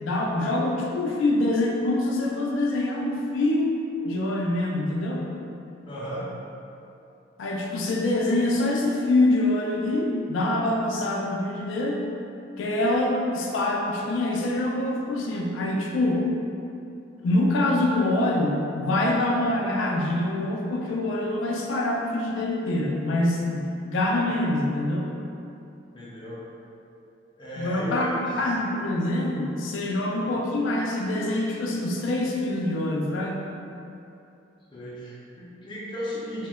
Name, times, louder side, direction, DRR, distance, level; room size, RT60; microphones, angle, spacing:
voice 1, 0.0-3.7 4.0-5.2 7.4-12.0 12.6-16.2 17.2-25.1 27.6-28.1 28.4-33.4, left 1 dB, 85° left, -1 dB, 0.4 m, -25 dB
voice 2, 5.9-6.3 25.9-26.4 27.4-28.2 30.1-30.3 34.7-36.5, equal, 25° left, -7 dB, 0.5 m, -35 dB
2.8 x 2.0 x 3.4 m, 2.7 s
head